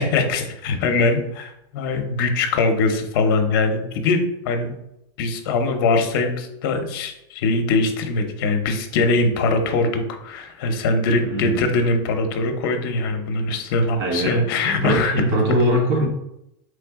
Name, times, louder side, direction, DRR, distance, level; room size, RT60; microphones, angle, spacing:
voice 1, 0.0-4.7 5.2-15.1, left 3 dB, 60° left, 6 dB, 0.7 m, -22 dB
voice 2, 11.2-11.6 14.0-16.1, equal, 70° right, -1 dB, 1.4 m, -21 dB
3.9 x 3.3 x 3.6 m, 0.85 s
supercardioid pair, 170°, 13 cm